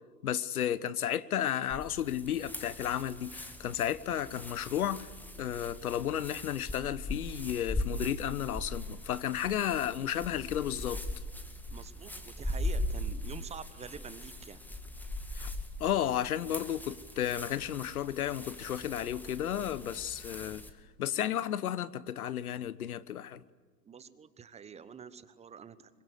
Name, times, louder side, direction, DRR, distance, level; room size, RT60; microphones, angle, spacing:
voice 1, 0.2-5.1 5.4-11.0 15.3-15.5 15.8-20.6 21.0-23.4, left 10 dB, 60° left, 1.1 m, -33 dB
sound 1, 1.7-20.7, left 1 dB, 5° left, 2.1 m, -40 dB
voice 2, 11.7-14.6 23.8-25.9, right 7 dB, 15° right, 1.2 m, -47 dB
26.0 x 24.0 x 8.4 m
figure-of-eight pair, 100°, 50 cm